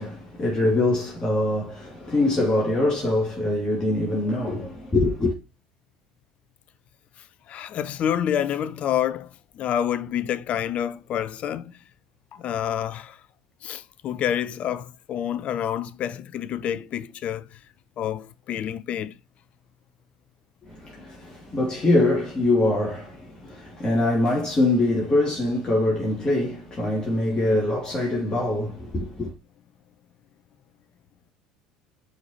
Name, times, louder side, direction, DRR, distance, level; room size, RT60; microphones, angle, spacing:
voice 1, 0.0-5.3 20.6-29.3, left 2 dB, 25° left, 2.5 m, -23 dB
voice 2, 7.5-11.7 12.3-13.2 13.6-17.6 18.0-19.1, left 10 dB, 45° left, 0.6 m, -28 dB
9.6 x 4.5 x 2.9 m
figure-of-eight pair, 65°, 3 cm